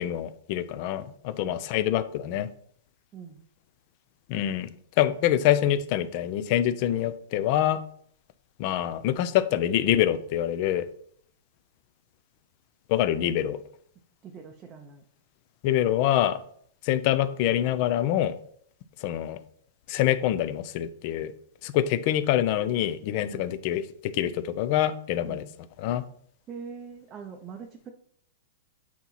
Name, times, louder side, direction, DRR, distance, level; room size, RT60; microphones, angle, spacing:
voice 1, 0.0-2.5 4.3-4.7 5.0-7.8 8.6-10.9 12.9-13.6 15.6-16.4 16.8-18.3 19.0-19.4 19.9-21.3 21.6-25.4 25.8-26.0, left 12 dB, 40° left, 13 dB, 0.5 m, -25 dB
voice 2, 14.2-15.0 23.3-23.5 25.3-25.5 26.5-27.9, right 6 dB, 20° right, 2 dB, 0.6 m, -43 dB
8.4 x 3.0 x 5.6 m, 0.63 s
hypercardioid pair, 160°, 0 cm